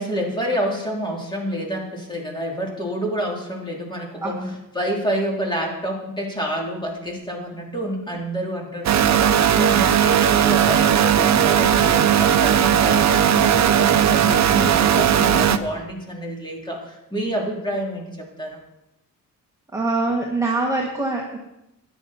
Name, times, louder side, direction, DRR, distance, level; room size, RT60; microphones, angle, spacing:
voice 1, 0.0-4.4 4.7-18.6, equal, 15° left, -1 dB, 3.2 m, -28 dB
voice 2, 4.2-4.6 9.5-9.9 19.7-21.4, right 2 dB, 10° right, -3 dB, 1.5 m, -24 dB
sound 1, 8.8-15.6, right 9 dB, 50° right, 0.7 m, -17 dB
13.5 x 10.5 x 4.3 m, 0.89 s
cardioid pair, 120°, 35 cm